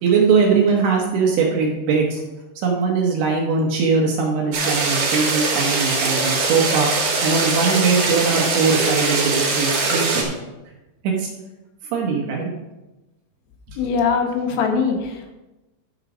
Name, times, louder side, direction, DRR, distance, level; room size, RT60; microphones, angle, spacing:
voice 1, 0.0-2.2 2.6-6.9 7.2-10.3 11.2-11.3 11.9-12.5 13.7-13.8, right 5 dB, 65° right, -1 dB, 2.8 m, -20 dB
sound 1, 4.5-10.2, right 3 dB, 50° right, 3.3 m, -22 dB
voice 2, 13.8-15.3, left 5 dB, 80° left, 2 dB, 3.7 m, -22 dB
12.0 x 5.5 x 5.0 m, 1.0 s
omnidirectional pair, 5.6 m